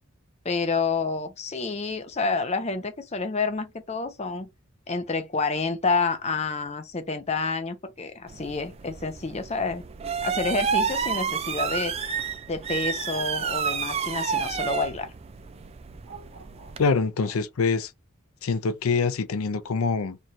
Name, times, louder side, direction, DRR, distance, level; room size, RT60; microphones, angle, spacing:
voice 1, 0.4-4.5 4.9-9.8 10.2-11.9 12.5-15.1, left 4 dB, 30° left, 0.6 m, -28 dB
sound 1, 8.3-16.9, right 6 dB, 30° right, 0.3 m, -30 dB
sound 2, 13.1-14.4 16.0-17.8, right 3 dB, 55° right, 1.1 m, -47 dB
voice 2, 16.8-17.9 18.4-20.2, left 4 dB, 85° left, 0.5 m, -25 dB
3.1 x 2.4 x 4.1 m
head